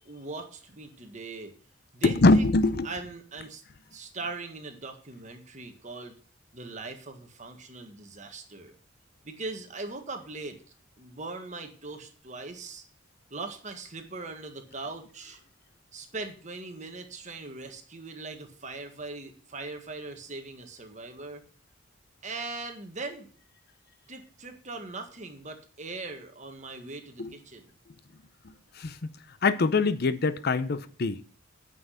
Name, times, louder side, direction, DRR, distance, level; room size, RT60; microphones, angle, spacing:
voice 1, 0.0-1.5 1.9-2.5 2.8-3.6 3.9-6.2 6.5-8.7 9.2-10.6 11.0-12.8 13.3-15.4 15.9-21.4 22.2-23.3 24.1-27.8, right 3 dB, 35° right, 1.7 m, -40 dB
voice 2, 2.0-2.9 27.2-27.3 28.4-29.0 29.4-31.2, left 3 dB, 50° left, 0.6 m, -23 dB
9.2 x 6.0 x 8.1 m
head